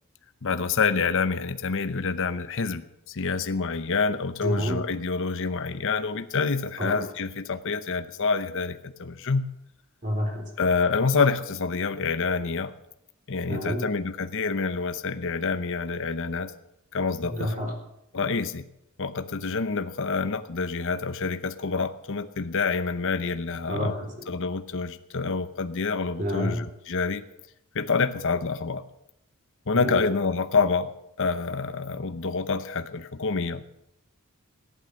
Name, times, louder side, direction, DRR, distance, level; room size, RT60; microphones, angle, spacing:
voice 1, 0.4-9.4 10.6-12.7 13.3-16.5 16.9-17.5 18.1-18.7 19.0-23.9 24.3-27.2 27.7-28.8 29.7-30.9 31.2-33.6, left 4 dB, 60° left, 10 dB, 0.8 m, -27 dB
voice 2, 4.4-4.8 6.8-7.0 10.0-10.5 13.5-13.9 17.2-17.7 23.7-24.3 26.2-26.6 29.7-30.0, equal, 35° right, 2 dB, 3.9 m, -29 dB
15.0 x 11.5 x 6.5 m, 0.81 s
head